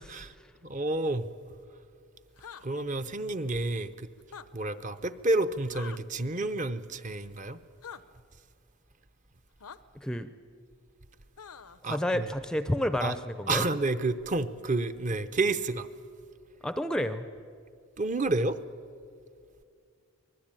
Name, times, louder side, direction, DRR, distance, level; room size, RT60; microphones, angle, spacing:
voice 1, 0.6-1.3 2.6-4.1 4.5-7.6 11.8-12.3 13.0-13.1 13.5-15.9 18.0-18.6, right 2 dB, 35° right, 11 dB, 0.8 m, -30 dB
sound 1, 2.4-2.6 4.2-4.5 5.7-6.0 7.8-8.0 9.6-9.8 11.4-11.8, left 7 dB, 90° left, 0.8 m, -44 dB
voice 2, 10.0-10.3 11.9-13.6 16.6-17.3, left 1 dB, 5° left, 11 dB, 0.6 m, -30 dB
25.5 x 20.0 x 9.0 m, 2.3 s
head